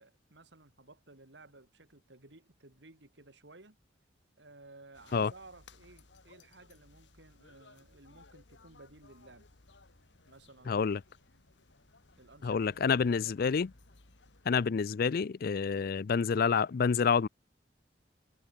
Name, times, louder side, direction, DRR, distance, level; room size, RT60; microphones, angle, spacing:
voice 1, 0.0-3.8 4.4-9.5 10.2-11.0 12.2-13.6, right 2 dB, 75° right, 2.7 m, -56 dB
sound 1, 4.9-14.5, left 3 dB, 80° left, 1.9 m, -61 dB
voice 2, 10.7-11.0 12.4-13.7 14.5-17.3, left 6 dB, 55° left, 0.4 m, -28 dB
head